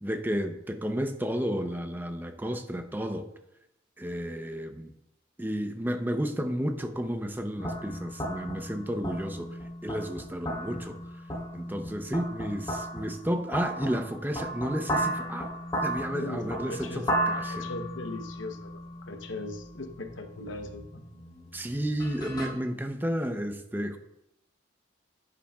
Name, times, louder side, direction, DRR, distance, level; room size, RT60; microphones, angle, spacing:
voice 1, 0.0-3.3 4.0-4.9 5.4-9.5 9.8-11.0 11.5-15.5 15.8-17.7 21.5-24.0, equal, 10° right, 7 dB, 0.6 m, -32 dB
sound 1, 7.6-22.5, right 1 dB, 20° left, 3.3 m, -35 dB
voice 2, 16.1-17.1 17.3-21.1, left 2 dB, 70° left, 6 dB, 0.9 m, -39 dB
10.0 x 10.0 x 2.3 m, 0.86 s
head